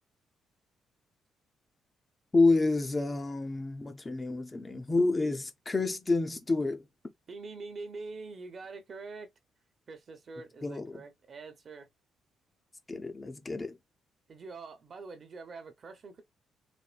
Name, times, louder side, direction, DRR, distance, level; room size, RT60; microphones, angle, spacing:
voice 1, 2.3-6.8 10.6-11.0 12.9-13.7, left 3 dB, 20° left, 0.6 m, -28 dB
voice 2, 7.3-9.3 9.9-11.9 14.3-16.2, right 3 dB, 40° right, 0.9 m, -44 dB
4.2 x 2.6 x 2.5 m
cardioid pair, 140°, 0 cm